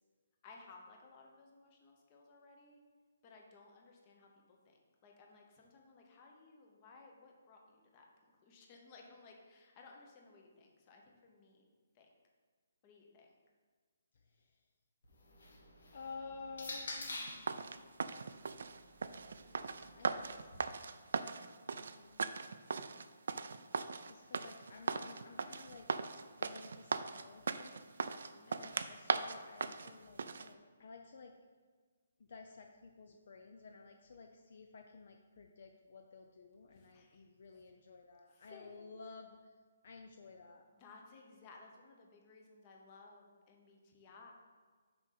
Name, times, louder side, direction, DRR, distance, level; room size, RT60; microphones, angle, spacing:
voice 1, 0.4-2.8 3.2-4.8 5.0-11.7 11.9-12.1 12.8-13.4 28.1-28.7 36.7-37.2 37.5-37.6 38.3-38.8 40.7-44.3, left 3 dB, 20° left, 1 dB, 0.9 m, -59 dB
sound 1, 15.0-17.5 18.4-20.6, left 2 dB, 75° left, 1.9 m, -48 dB
voice 2, 15.9-18.0 20.0-20.8 21.8-22.2 24.0-31.3 32.2-39.5 39.8-40.7, left 4 dB, 45° left, 3 dB, 0.5 m, -54 dB
sound 2, 17.3-30.5, right 5 dB, 60° right, 0.4 m, -39 dB
6.0 x 5.0 x 5.8 m, 1.5 s
hypercardioid pair, 175°, 0 cm